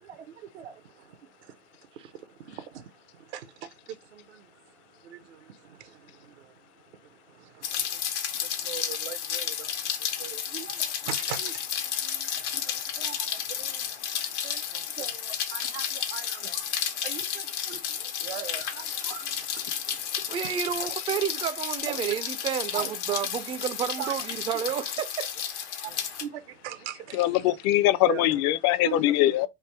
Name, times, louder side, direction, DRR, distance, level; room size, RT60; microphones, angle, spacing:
voice 1, 0.0-0.8 2.5-2.8 3.3-3.5 4.1-4.4 5.0-6.0 6.4-6.5 7.4-8.0 8.6-9.7 10.2-16.7 17.0-20.5 21.8-22.1 22.7-22.9 24.0-24.1 25.8-27.3 28.1-28.4 28.8-29.5, right 10 dB, 85° right, 0.8 m, -41 dB
Rain, 7.6-26.2, left 9 dB, 90° left, 1.0 m, -32 dB
voice 2, 20.3-25.3, right 9 dB, 20° right, 0.3 m, -30 dB
voice 3, 27.1-29.5, left 14 dB, 50° left, 0.5 m, -22 dB
3.4 x 2.6 x 4.5 m
hypercardioid pair, 105°, 33 cm